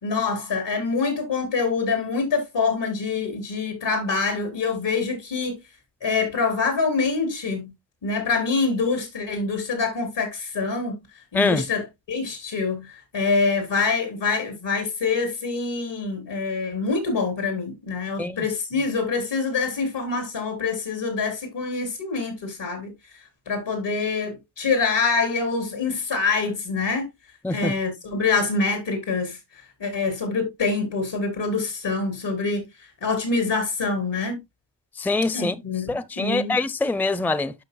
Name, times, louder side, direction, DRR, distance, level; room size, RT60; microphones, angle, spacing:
voice 1, 0.0-5.6 6.0-7.7 8.0-11.0 11.3-12.9 13.1-22.9 23.5-27.1 27.5-29.4 29.8-32.7 33.0-34.4 35.3-36.6, left 4 dB, 90° left, 4.2 m, -25 dB
voice 2, 11.3-11.6 18.2-18.4 27.4-27.7 35.0-35.5 35.9-37.5, left 3 dB, 5° left, 0.5 m, -24 dB
12.0 x 5.9 x 2.3 m
wide cardioid pair, 115°, 42 cm